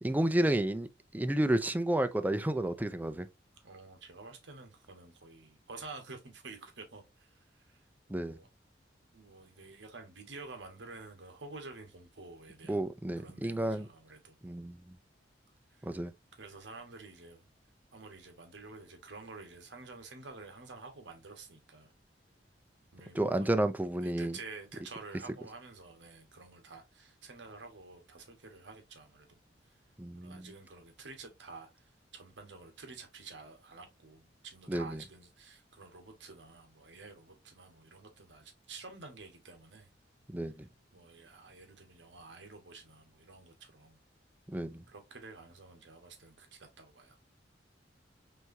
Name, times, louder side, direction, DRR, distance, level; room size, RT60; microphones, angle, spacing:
voice 1, 0.0-3.3 8.1-8.4 12.7-13.9 14.4-15.0 15.8-16.1 23.1-24.4 30.0-30.5 34.7-35.0 40.3-40.7 44.5-44.8, right 1 dB, 10° right, 0.4 m, -31 dB
voice 2, 3.6-7.8 8.3-8.5 9.1-12.9 13.2-14.4 15.7-16.0 16.4-17.5 17.9-21.9 22.9-23.5 24.0-29.4 29.6-29.7 30.1-31.7 32.1-39.9 40.9-44.0 44.9-47.2, right 3 dB, 70° right, 1.2 m, -50 dB
4.6 x 3.4 x 2.6 m
head